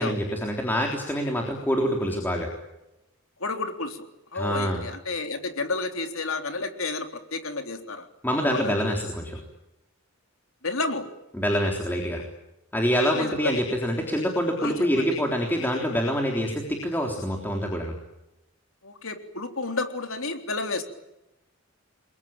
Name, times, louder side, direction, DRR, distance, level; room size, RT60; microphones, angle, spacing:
voice 1, 0.0-2.5 4.3-4.8 8.2-9.4 11.3-12.2 12.7-17.9, equal, 10° left, 1 dB, 3.6 m, -26 dB
voice 2, 3.4-4.1 4.3-8.1 8.4-8.7 10.6-11.1 13.1-13.6 14.6-15.2 18.8-20.8, left 3 dB, 70° left, 6 dB, 3.6 m, -31 dB
29.5 x 22.5 x 9.0 m, 0.92 s
head